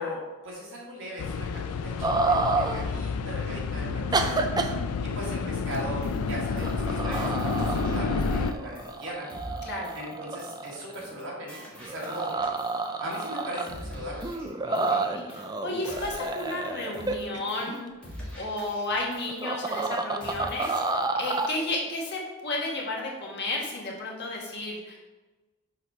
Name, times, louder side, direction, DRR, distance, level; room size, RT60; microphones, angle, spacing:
voice 1, 0.0-4.4 5.0-9.3 9.9-12.4 13.0-14.3, equal, 60° right, -4 dB, 2.1 m, -38 dB
sound 1, 1.2-8.5, left 5 dB, 85° left, 0.4 m, -30 dB
sound 2, 2.0-2.9 4.1-4.7 6.2-6.3 6.6-11.2 11.7-13.9 14.2-17.8 19.3-21.5, right 3 dB, 20° right, 0.3 m, -30 dB
voice 2, 3.5-3.9 9.6-9.9 14.7-17.8 18.3-25.0, left 2 dB, 50° left, -2 dB, 1.4 m, -33 dB
sound 3, 5.7-5.8 6.0-6.3 6.6-6.9 7.1-8.5 8.8-9.0 9.3-9.6 9.8-10.1 10.4-10.7 10.9-11.2 11.5-12.9 13.1-13.4 13.7-15.0 15.3-15.6 15.8-16.7 16.9-17.2 17.5-17.8 18.0-19.4 19.7-19.9 20.2-21.0 21.3-21.6, equal, 5° left, 1.5 m, -44 dB
6.5 x 3.9 x 4.3 m, 1.2 s
head